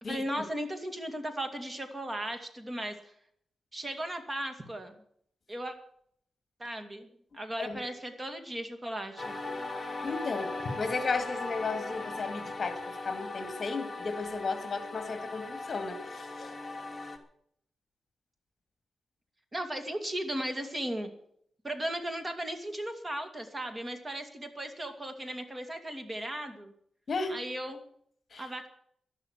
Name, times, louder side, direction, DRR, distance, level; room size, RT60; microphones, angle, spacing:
voice 1, 0.1-3.1 3.7-5.0 5.5-5.8 6.6-7.1 7.3-9.3 19.5-21.1 21.6-26.7 27.3-27.8 28.4-28.7, right 1 dB, 25° right, 7 dB, 2.4 m, -36 dB
sound 1, 9.2-17.2, left 2 dB, 20° left, 2.7 m, -39 dB
voice 2, 9.8-16.5 27.1-27.4 28.3-28.5, left 4 dB, 45° left, 8 dB, 2.3 m, -34 dB
12.5 x 12.0 x 8.2 m, 0.67 s
wide cardioid pair, 110°, 0 cm